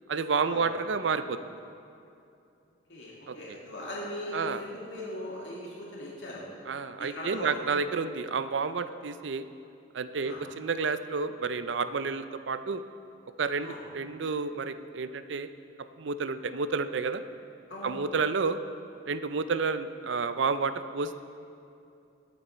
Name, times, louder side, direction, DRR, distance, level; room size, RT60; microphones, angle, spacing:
voice 1, 0.1-1.4 3.3-3.4 4.3-4.6 6.7-9.4 9.9-12.8 13.4-15.5 15.8-17.2 17.8-18.6 19.1-21.2, right 4 dB, 70° right, 12 dB, 0.5 m, -30 dB
voice 2, 2.9-6.4 7.0-7.5 10.2-10.4 13.6-13.8 17.7-18.1, left 1 dB, 70° left, -5 dB, 2.1 m, -39 dB
16.0 x 8.4 x 4.3 m, 2.6 s
head